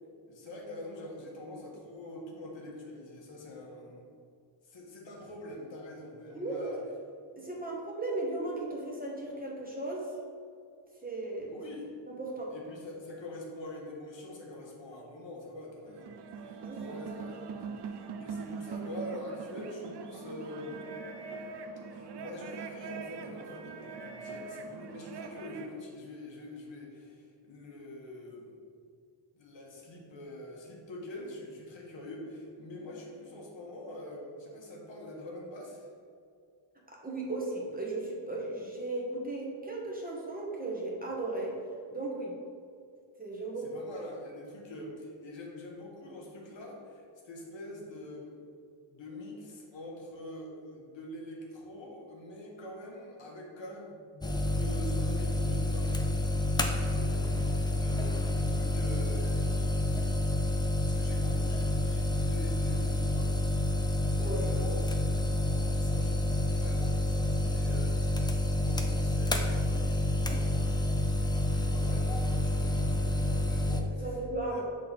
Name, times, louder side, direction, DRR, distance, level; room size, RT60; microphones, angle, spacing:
voice 1, 0.3-4.1 4.6-6.8 11.5-11.9 12.5-16.1 16.4-20.8 21.9-28.5 29.3-35.9 43.6-48.4 48.9-56.0 56.6-60.3 60.6-63.5 64.1-64.8 65.3-74.6, left 1 dB, 70° left, -2 dB, 1.3 m, -45 dB
voice 2, 6.3-6.7 7.4-10.1 11.0-11.5 12.1-12.5 16.6-17.0 36.9-41.6 41.9-42.3 43.2-43.8 64.2-64.5 74.0-74.6, right 2 dB, 20° right, -3 dB, 1.1 m, -36 dB
sound 1, 15.9-25.7, right 5 dB, 60° right, 0.6 m, -42 dB
sound 2, 54.2-73.8, left 1 dB, 10° left, 0.3 m, -29 dB
6.4 x 3.8 x 4.1 m, 2.3 s
wide cardioid pair, 105°, 46 cm